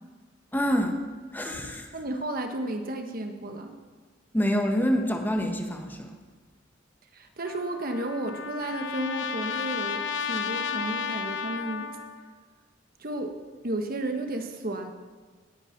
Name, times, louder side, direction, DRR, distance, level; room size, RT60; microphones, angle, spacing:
voice 1, 0.5-1.0 1.3-1.9 4.3-6.2, equal, 10° left, 3 dB, 1.2 m, -26 dB
voice 2, 1.9-3.7 7.1-11.9 13.0-13.4 13.6-14.9, right 1 dB, 50° right, 5 dB, 1.3 m, -33 dB
Trumpet, 7.5-12.3, left 6 dB, 85° left, 0.9 m, -33 dB
18.0 x 9.0 x 5.8 m, 1.4 s
head